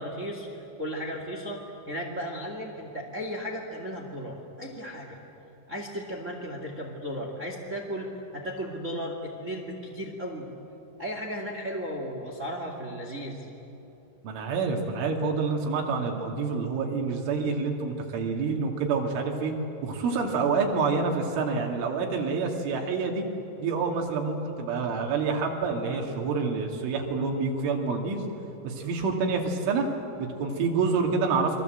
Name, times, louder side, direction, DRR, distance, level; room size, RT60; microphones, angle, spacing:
voice 1, 0.0-5.2 5.7-10.5 11.0-13.5 25.8-26.0, equal, 30° right, 1 dB, 1.4 m, -35 dB
voice 2, 14.2-19.5 19.8-23.2 23.6-28.2 28.6-29.9 30.2-31.6, right 4 dB, 80° right, 1 dB, 4.9 m, -27 dB
29.5 x 23.0 x 8.0 m, 3.0 s
omnidirectional pair, 5.5 m